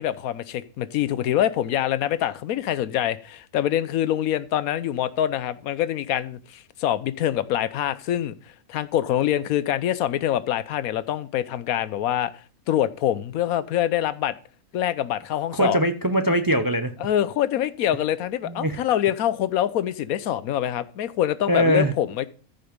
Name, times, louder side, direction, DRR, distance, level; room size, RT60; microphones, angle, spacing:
voice 1, 0.0-8.4 8.7-12.3 12.7-14.4 14.7-15.8 17.0-22.3, left 11 dB, 80° left, 1.1 m, -25 dB
voice 2, 15.5-16.9 18.5-18.8 21.5-21.9, equal, 25° right, 0.5 m, -21 dB
14.0 x 5.3 x 5.2 m
omnidirectional pair, 1.5 m